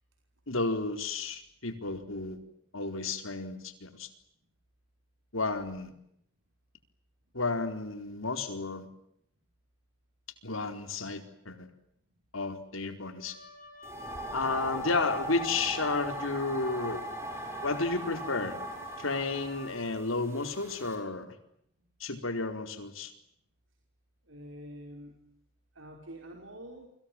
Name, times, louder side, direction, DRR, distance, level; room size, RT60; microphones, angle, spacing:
voice 1, 0.5-2.4 2.7-4.1 5.3-5.9 7.3-8.9 10.4-11.7 12.3-13.4 14.3-17.0 17.6-18.6 19.0-21.3 22.0-23.1, left 3 dB, 85° left, 7 dB, 4.4 m, -32 dB
Wind instrument woodwind instrument, 13.2-19.9, left 3 dB, 40° left, 7.5 m, -47 dB
sound 1, 13.8-21.0, right 1 dB, 15° right, 7.6 m, -39 dB
voice 2, 24.3-25.2 25.7-26.9, equal, 70° right, 2 dB, 5.4 m, -46 dB
30.0 x 25.0 x 7.3 m, 0.73 s
head